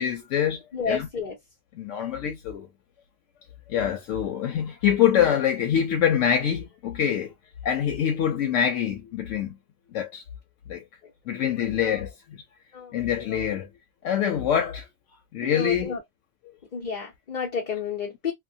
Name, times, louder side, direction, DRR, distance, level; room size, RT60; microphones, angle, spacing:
voice 1, 0.0-1.1 1.8-2.7 3.7-7.3 7.6-9.6 9.9-10.2 10.7-10.8 11.3-12.4 12.9-13.7 14.0-14.9 15.3-15.9, left 9 dB, 90° left, 0.9 m, -25 dB
voice 2, 0.7-1.4 11.8-12.0 12.7-12.9 13.3-13.5 15.4-16.0 16.7-18.3, left 5 dB, 45° left, 0.8 m, -31 dB
2.9 x 2.1 x 2.6 m
omnidirectional pair, 1.2 m